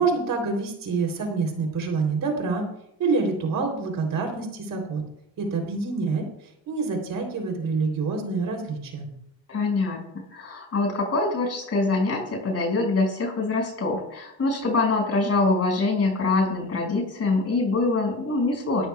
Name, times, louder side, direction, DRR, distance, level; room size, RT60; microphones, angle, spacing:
voice 1, 0.0-2.7 3.0-5.0 5.4-6.3 6.7-9.1, right 4 dB, 55° right, 3 dB, 3.5 m, -26 dB
voice 2, 9.5-10.0 10.3-18.9, left 3 dB, 40° left, 1 dB, 6.0 m, -24 dB
20.0 x 13.5 x 2.4 m, 0.77 s
cardioid pair, 120°, 39 cm